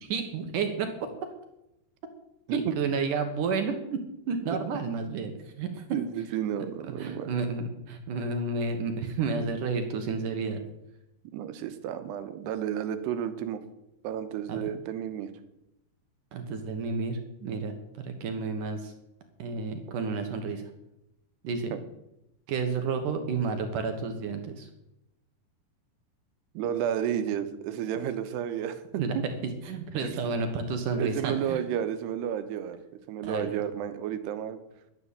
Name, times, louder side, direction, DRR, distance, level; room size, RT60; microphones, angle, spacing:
voice 1, 0.0-1.1 2.5-5.3 5.6-5.8 7.0-10.6 14.5-14.7 16.3-18.9 19.4-20.6 21.4-21.7 22.5-24.7 29.0-29.3 29.7-31.6 33.2-33.5, right 4 dB, 65° right, 6 dB, 2.4 m, -31 dB
voice 2, 5.9-7.3 11.3-13.6 14.0-15.3 21.7-21.8 26.5-28.8 29.1-29.2 30.0-30.2 30.9-32.8 33.1-34.6, right 9 dB, 80° right, 10 dB, 3.0 m, -32 dB
11.5 x 9.9 x 8.3 m, 0.87 s
omnidirectional pair, 4.8 m